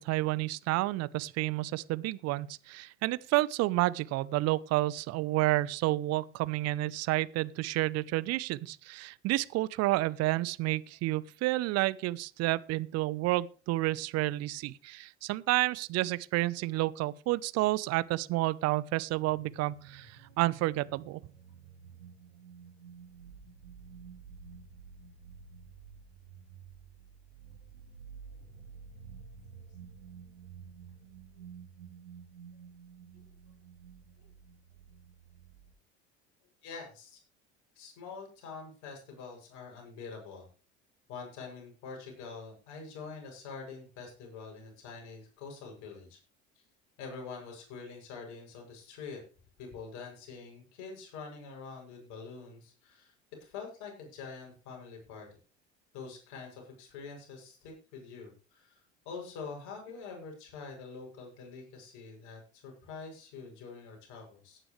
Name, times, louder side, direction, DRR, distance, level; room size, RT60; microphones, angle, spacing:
voice 1, 0.0-21.2, right 18 dB, 50° right, 0.8 m, -30 dB
sound 1, 19.2-35.7, right 6 dB, 80° right, 2.5 m, -51 dB
voice 2, 36.6-37.2 37.8-40.5 41.1-46.2 46.6-46.7 47.0-49.2 49.6-53.1 53.4-55.3 55.9-64.6, left 5 dB, 55° left, 7.3 m, -45 dB
16.5 x 10.0 x 3.3 m
figure-of-eight pair, 70°, 34 cm